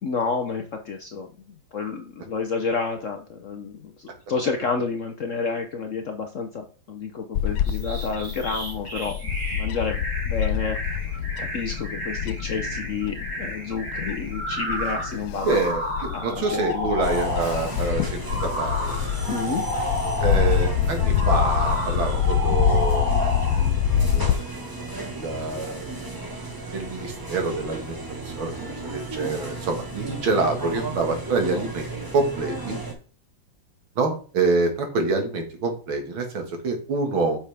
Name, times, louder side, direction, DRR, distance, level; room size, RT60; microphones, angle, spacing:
voice 1, 0.0-1.3 1.7-9.2 9.5-10.8 11.4-15.7 16.1-16.9 19.3-19.6, left 5 dB, 60° left, 5 dB, 0.8 m, -30 dB
Bird / Wind, 7.3-24.3, left 9 dB, 85° left, 1.4 m, -26 dB
sound 1, 7.6-17.8 18.3-20.7 21.2-23.7, equal, 45° right, 3.5 m, -31 dB
voice 2, 15.4-19.0 20.2-23.1 24.1-24.4 25.1-25.9 26.7-28.0 28.3-28.5 28.9-31.9 32.1-32.8 34.0-37.4, right 3 dB, 80° right, 4 dB, 2.6 m, -26 dB
sound 2, 17.0-32.9, right 2 dB, 15° right, 1.1 m, -35 dB
8.4 x 6.3 x 3.4 m, 0.39 s
omnidirectional pair, 2.2 m